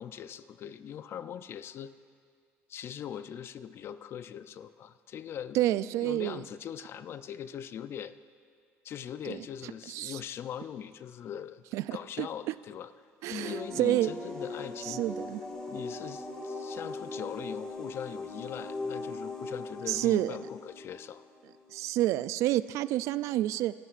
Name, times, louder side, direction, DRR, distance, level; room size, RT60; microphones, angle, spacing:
voice 1, 0.0-1.9 2.7-8.1 8.8-11.6 11.9-12.9 13.3-15.0 15.7-21.2, left 9 dB, 50° left, 13 dB, 0.5 m, -41 dB
voice 2, 5.5-6.4 9.3-9.4 9.9-10.2 11.7-12.3 13.2-14.1 14.8-15.4 19.9-20.3 21.7-23.7, right 14 dB, 70° right, 16 dB, 0.3 m, -29 dB
sound 1, 13.4-21.8, left 2 dB, 15° left, 1.9 m, -40 dB
24.0 x 11.5 x 2.5 m, 2.1 s
cardioid pair, 110°, 5 cm